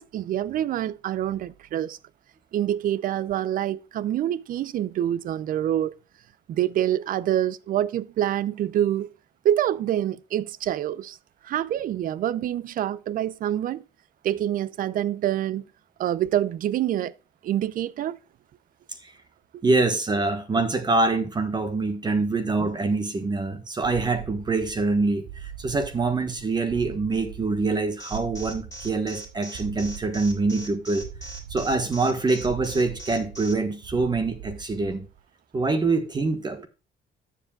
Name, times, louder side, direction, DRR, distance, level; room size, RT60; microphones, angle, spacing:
voice 1, 0.0-2.0 2.5-5.9 6.5-9.1 9.4-11.2 11.4-13.8 14.2-15.6 16.0-17.1 17.4-18.2, right 11 dB, 55° right, 0.6 m, -26 dB
voice 2, 19.6-31.0 31.5-35.1 35.5-36.7, right 3 dB, 25° right, 1.3 m, -25 dB
sound 1, 23.8-35.2, right 9 dB, 80° right, 1.1 m, -41 dB
Alarm, 28.0-33.5, right 1 dB, 15° left, 3.1 m, -40 dB
13.0 x 7.5 x 2.4 m
cardioid pair, 110°, 17 cm